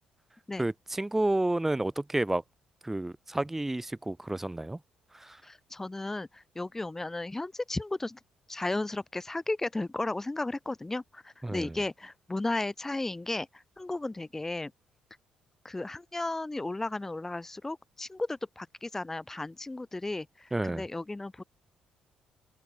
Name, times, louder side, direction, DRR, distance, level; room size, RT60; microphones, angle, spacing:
voice 1, 0.6-2.4 2.8-4.8 11.4-11.7 20.5-20.8, right 1 dB, 10° right, 0.5 m, -30 dB
voice 2, 5.4-8.2 8.5-13.5 13.8-14.7 15.6-21.4, left 2 dB, 15° left, 1.1 m, -34 dB
cardioid pair, 80°, 3 cm